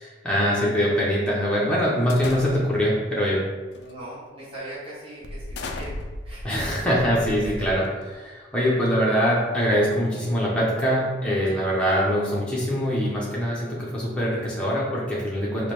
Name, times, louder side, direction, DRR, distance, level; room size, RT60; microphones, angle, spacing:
voice 1, 0.0-3.4 6.4-15.7, equal, 5° left, -6 dB, 0.7 m, -23 dB
sound 1, 2.1-2.9 3.7-4.0 4.4-4.6 5.2-8.1, left 2 dB, 70° left, 0.4 m, -36 dB
voice 2, 3.8-5.9 6.2-6.6 7.4-7.7, right 1 dB, 30° right, -9 dB, 0.8 m, -39 dB
4.8 x 2.2 x 3.0 m, 1.3 s
head